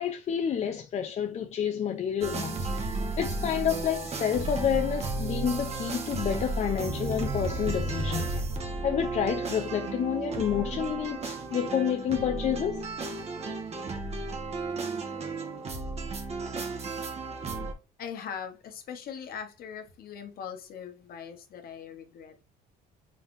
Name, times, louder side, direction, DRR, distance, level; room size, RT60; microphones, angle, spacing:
voice 1, 0.0-2.7 3.2-8.4 8.8-12.8, left 8 dB, 40° left, 0.5 m, -29 dB
sound 1, 2.2-17.7, right 3 dB, 40° right, 1.1 m, -33 dB
voice 2, 18.0-22.4, left 7 dB, 60° left, 1.1 m, -41 dB
4.0 x 3.5 x 2.5 m
cardioid pair, 110°, 17 cm